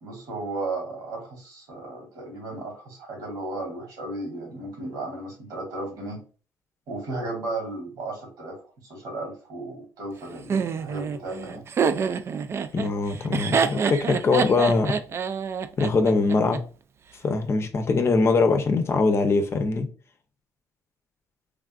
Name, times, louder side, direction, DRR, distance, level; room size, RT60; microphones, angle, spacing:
voice 1, 0.0-6.2 6.9-8.6 8.8-11.6, right 2 dB, 75° right, 1.6 m, -34 dB
Laughter, 10.5-16.6, right 6 dB, 40° right, 0.3 m, -26 dB
voice 2, 12.7-14.9 15.8-16.6 17.2-19.9, left 3 dB, 40° left, 0.6 m, -22 dB
3.4 x 2.4 x 2.3 m
cardioid pair, 85°, 7 cm